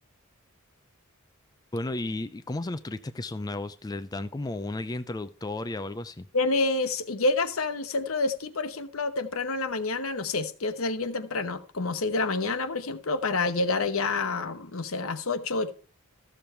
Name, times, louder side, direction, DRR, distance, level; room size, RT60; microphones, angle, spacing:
voice 1, 1.7-6.3, left 2 dB, 20° left, 0.4 m, -33 dB
voice 2, 6.3-15.7, left 3 dB, 75° left, 1.0 m, -28 dB
14.0 x 7.0 x 4.4 m
head